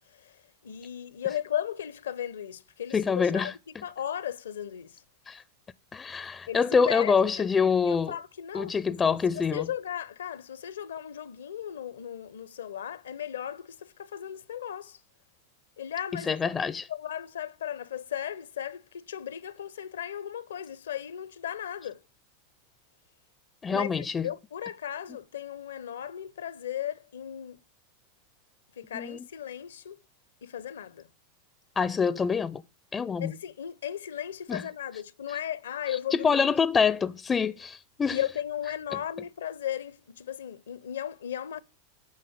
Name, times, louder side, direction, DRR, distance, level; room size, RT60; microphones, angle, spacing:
voice 1, 0.6-3.5 3.8-4.9 6.5-7.3 7.9-8.8 9.4-15.0 15.8-16.6 16.9-22.0 23.7-27.6 28.8-30.0 30.4-31.1 33.2-36.5 38.1-41.6, left 10 dB, 75° left, 0.7 m, -36 dB
voice 2, 2.9-3.8 5.3-5.4 5.9-8.2 8.5-9.7 16.1-16.9 23.6-24.3 28.9-29.3 31.8-32.6 32.9-33.3 34.5-34.6 35.3-35.4 35.9-38.2 38.9-39.0, left 6 dB, 20° left, 0.4 m, -26 dB
9.6 x 5.6 x 7.9 m
figure-of-eight pair, 90°, 0 cm